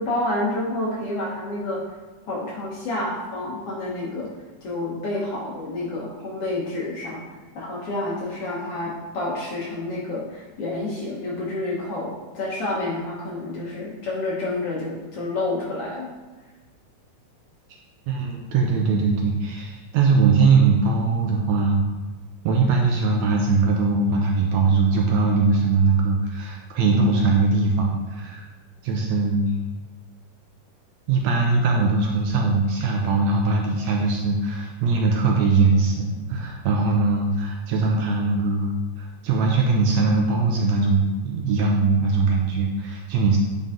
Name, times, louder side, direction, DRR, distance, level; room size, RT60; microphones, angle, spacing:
voice 1, 0.0-1.8 2.3-4.3 4.6-7.2 7.6-16.1, left 2 dB, 60° left, -5 dB, 1.7 m, -29 dB
voice 2, 18.1-21.9 22.5-28.5 28.8-29.5 31.1-43.4, right 4 dB, 75° right, 0 dB, 1.8 m, -21 dB
8.8 x 4.0 x 3.7 m, 1.2 s
omnidirectional pair, 3.6 m